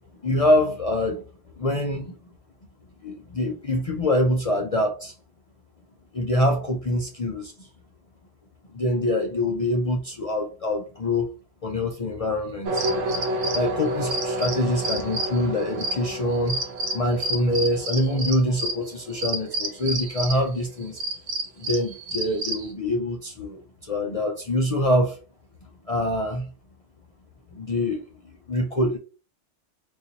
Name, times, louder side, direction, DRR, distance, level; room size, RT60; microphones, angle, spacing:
voice 1, 0.2-1.2 1.6-2.1 3.0-5.1 6.1-7.7 8.7-11.3 11.6-12.8 13.5-16.6 16.9-21.0 21.6-25.2 25.8-26.5 27.5-28.0 28.5-29.0, left 1 dB, 55° left, 0.4 m, -25 dB
sound 1, 12.7-20.5 20.8-22.7, right 1 dB, 80° right, 1.2 m, -29 dB
4.0 x 2.6 x 2.6 m
omnidirectional pair, 1.2 m